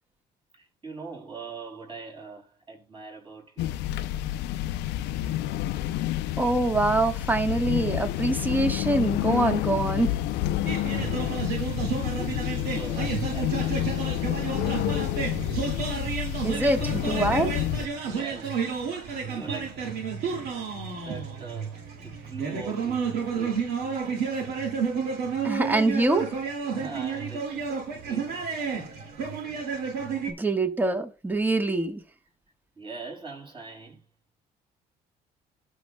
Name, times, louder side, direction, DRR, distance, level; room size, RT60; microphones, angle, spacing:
voice 1, 0.6-3.7 11.6-14.3 18.0-20.1 20.9-23.6 26.7-28.5 32.8-34.0, right 4 dB, 30° right, 5.8 m, -42 dB
sound 1, 3.6-17.9, left 13 dB, 85° left, 0.5 m, -29 dB
voice 2, 6.4-10.1 16.4-17.6 25.4-26.3 30.3-32.0, right 2 dB, 10° right, 1.2 m, -24 dB
sound 2, 10.7-30.3, right 5 dB, 70° right, 2.3 m, -31 dB
18.0 x 6.3 x 2.3 m
cardioid pair, 110°, 17 cm